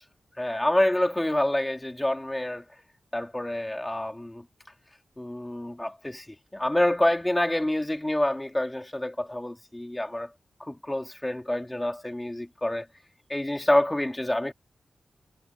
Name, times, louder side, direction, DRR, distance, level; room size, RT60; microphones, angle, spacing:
voice 1, 0.4-2.6 3.1-4.4 5.2-10.3 10.6-12.9 13.3-14.5, left 1 dB, 15° left, 2.9 m, -27 dB
wide cardioid pair, 85°, 0 cm